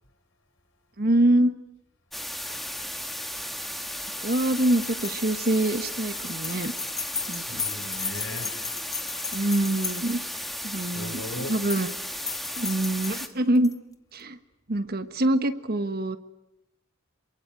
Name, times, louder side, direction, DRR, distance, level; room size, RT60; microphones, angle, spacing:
voice 1, 1.0-1.5 4.2-6.7 7.3-7.6 9.3-10.2 10.6-11.2 11.5-11.9 12.6-13.7 14.1-14.4 14.7-16.2, right 1 dB, 45° right, 1.3 m, -24 dB
sound 1, 2.1-13.3, equal, ahead, 1.5 m, -35 dB
sound 2, 4.3-10.4 11.4-11.9 12.2-13.7, left 6 dB, 15° left, 1.2 m, -36 dB
voice 2, 7.2-8.8 10.9-11.6, left 1 dB, 65° left, 5.4 m, -38 dB
27.5 x 23.5 x 9.1 m
head